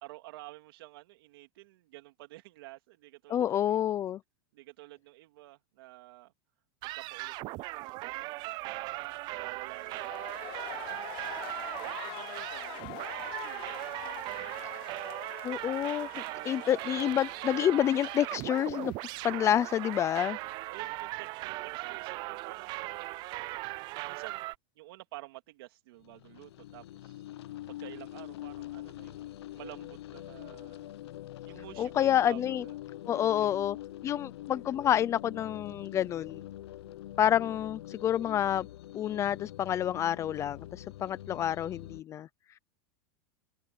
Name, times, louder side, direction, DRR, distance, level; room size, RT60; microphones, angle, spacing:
voice 1, 0.0-3.8 4.5-6.3 6.8-8.9 9.3-11.0 11.9-15.1 20.7-22.9 24.0-27.2 27.7-30.9 31.4-32.7, right 18 dB, 65° right, 3.0 m, -51 dB
voice 2, 3.3-4.2 15.4-18.9 19.2-20.4 31.8-32.6 33.1-33.8 34.0-36.5 37.2-38.7 38.9-42.3, left 10 dB, 20° left, 0.5 m, -28 dB
sound 1, 6.8-24.6, right 21 dB, 35° right, 0.4 m, -38 dB
sound 2, 9.7-20.6 20.8-20.9, left 18 dB, 40° left, 1.2 m, -46 dB
sound 3, 26.0-42.0, left 14 dB, 85° left, 0.9 m, -44 dB
supercardioid pair, 160°, 13 cm